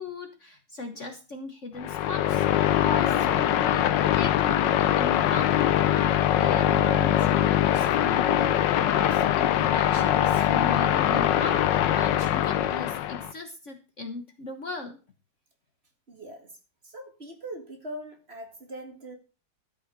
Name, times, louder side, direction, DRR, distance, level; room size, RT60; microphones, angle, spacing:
voice 1, 0.0-8.5 8.8-15.0, left 2 dB, 45° left, 7 dB, 1.4 m, -38 dB
sound 1, 1.8-13.3, left 11 dB, 75° left, 1.4 m, -23 dB
voice 2, 16.1-16.5 16.8-19.2, right 1 dB, 35° right, 3 dB, 2.3 m, -41 dB
13.0 x 5.7 x 6.8 m, 0.33 s
omnidirectional pair, 2.0 m